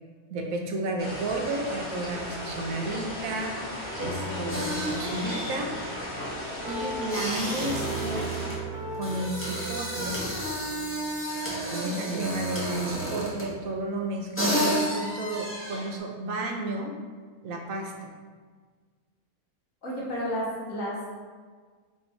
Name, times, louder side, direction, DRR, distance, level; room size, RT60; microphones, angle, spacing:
voice 1, 0.3-3.6 4.0-5.7 6.7-8.3 8.9-10.2 11.7-16.9 17.4-18.1, right 2 dB, 70° right, 2 dB, 1.1 m, -32 dB
sound 1, 1.0-8.6, left 1 dB, 35° left, 1.1 m, -36 dB
sound 2, 4.0-12.7, right 2 dB, 45° right, 0.8 m, -38 dB
sound 3, 4.5-13.6 14.1-14.2 14.3-16.0, equal, 15° left, 0.5 m, -32 dB
voice 2, 19.8-21.1, equal, 60° left, -6 dB, 1.5 m, -31 dB
4.2 x 2.5 x 4.6 m, 1.5 s
omnidirectional pair, 1.6 m